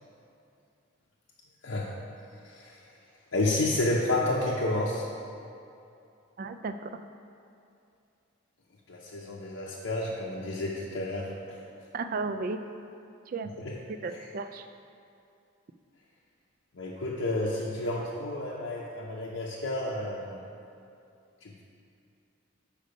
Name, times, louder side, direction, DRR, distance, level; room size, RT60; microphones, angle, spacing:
voice 1, 1.6-1.9 2.4-2.8 3.3-5.0 8.9-11.6 13.5-13.8 14.1-14.3 16.7-20.4 21.4-21.6, left 2 dB, 70° left, -5 dB, 0.7 m, -31 dB
voice 2, 6.4-7.0 11.9-12.6 13.3-13.5 13.9-14.6, right 4 dB, 40° right, 9 dB, 0.3 m, -34 dB
6.9 x 5.1 x 5.1 m, 2.6 s
head